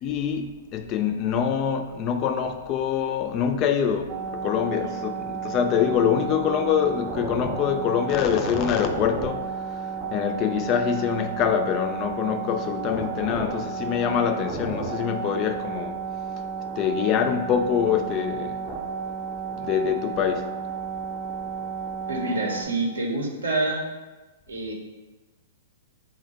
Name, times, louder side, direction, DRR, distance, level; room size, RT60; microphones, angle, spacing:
voice 1, 0.0-16.0 16.8-18.6 19.5-20.6, left 8 dB, 35° left, 6 dB, 0.3 m, -25 dB
sound 1, 4.1-22.6, right 5 dB, 25° right, 0.6 m, -32 dB
voice 2, 22.1-23.8 24.5-24.7, right 2 dB, 85° right, 1 dB, 0.7 m, -27 dB
3.8 x 2.0 x 3.9 m, 1.2 s
hypercardioid pair, 115°, 0 cm